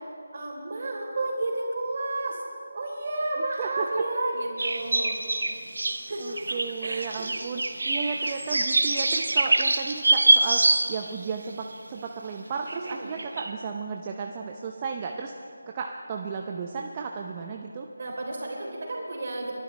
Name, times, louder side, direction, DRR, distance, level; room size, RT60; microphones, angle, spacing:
voice 1, 0.3-2.4 2.7-5.2 6.1-6.4 6.8-7.3 12.8-13.1 18.0-19.5, right 2 dB, 45° right, -1 dB, 3.7 m, -31 dB
sound 1, 4.6-11.2 11.7-11.8 12.7-12.9 13.2-13.5, right 2 dB, 70° right, 1.1 m, -25 dB
voice 2, 6.2-10.6 10.9-17.9, right 5 dB, 25° right, 2 dB, 0.6 m, -34 dB
29.0 x 12.0 x 3.3 m, 2.4 s
figure-of-eight pair, 165°, 0 cm